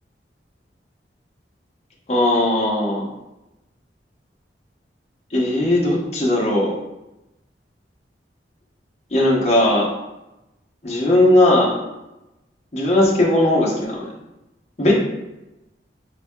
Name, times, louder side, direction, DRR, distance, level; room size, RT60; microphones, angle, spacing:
voice 1, 2.1-3.1 5.3-6.7 9.1-9.9 10.8-11.8 12.7-14.1 14.8-14.9, left 1 dB, 35° left, -4 dB, 1.0 m, -18 dB
4.5 x 2.9 x 3.6 m, 0.96 s
head